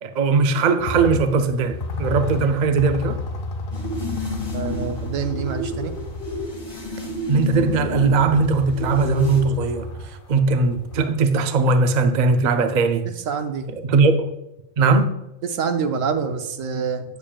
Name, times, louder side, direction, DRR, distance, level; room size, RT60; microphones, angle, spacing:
voice 1, 0.0-3.2 7.3-13.1 13.8-14.4 14.8-15.1, right 4 dB, 60° right, 0.4 m, -19 dB
sound 1, 0.8-11.1, left 3 dB, 50° left, 0.8 m, -32 dB
sound 2, 3.7-9.4, left 2 dB, 20° left, 1.5 m, -31 dB
voice 2, 4.5-5.9 13.3-13.7 15.5-17.0, right 6 dB, 75° right, 1.1 m, -26 dB
8.6 x 7.1 x 2.3 m
omnidirectional pair, 1.4 m